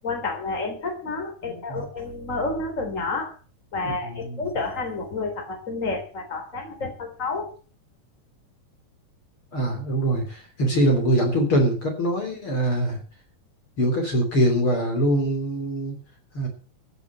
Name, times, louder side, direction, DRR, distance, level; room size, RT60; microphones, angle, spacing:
voice 1, 0.0-3.4 3.7-7.5, left 3 dB, 25° left, 4 dB, 3.9 m, -30 dB
voice 2, 1.4-1.8 3.8-3.9 4.2-4.4 9.5-13.0 13.8-15.9 16.3-16.5, right 1 dB, 45° left, 3 dB, 4.0 m, -23 dB
15.5 x 7.3 x 8.6 m, 0.38 s
omnidirectional pair, 3.4 m